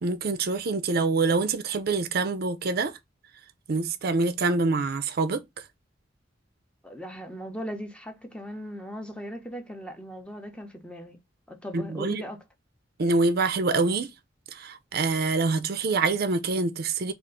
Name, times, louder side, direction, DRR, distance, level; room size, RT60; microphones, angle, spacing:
voice 1, 0.0-2.9 3.7-5.4 11.7-12.2 13.0-14.1 14.5-17.1, right 3 dB, 55° right, 0.5 m, -25 dB
voice 2, 6.8-11.2 11.5-12.4, equal, 5° left, 0.7 m, -38 dB
3.5 x 2.5 x 3.7 m
head